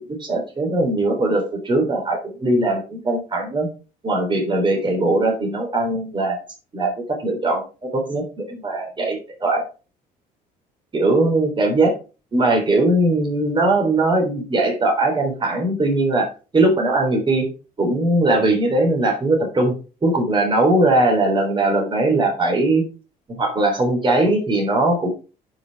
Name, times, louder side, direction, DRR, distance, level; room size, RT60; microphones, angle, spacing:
voice 1, 0.0-3.7 4.0-6.4 6.7-9.6 10.9-11.9 12.3-17.5 17.8-19.7 20.0-22.8 23.3-25.1, right 2 dB, 30° right, 1 dB, 3.5 m, -20 dB
10.5 x 5.2 x 4.6 m, 0.33 s
cardioid pair, 110°, 17 cm